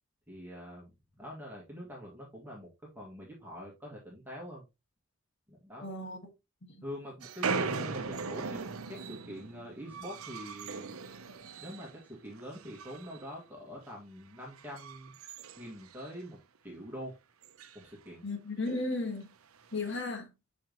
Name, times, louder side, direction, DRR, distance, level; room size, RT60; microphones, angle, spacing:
voice 1, 0.3-2.7 3.0-4.7 5.5-5.9 6.8-8.6 8.9-11.0 11.6-15.1 15.6-17.1 17.7-18.2, equal, 10° right, 1.9 m, -44 dB
voice 2, 5.8-6.2 6.6-6.8 18.2-19.3 19.7-20.3, left 2 dB, 55° left, 1.6 m, -35 dB
sound 1, 7.2-12.0 12.3-13.3 13.6-13.9 14.4-16.4 16.7-16.8 17.0-17.1 17.4-17.8 18.7-18.8 19.6-20.0, right 4 dB, 90° right, 0.7 m, -39 dB
7.5 x 5.3 x 3.0 m
head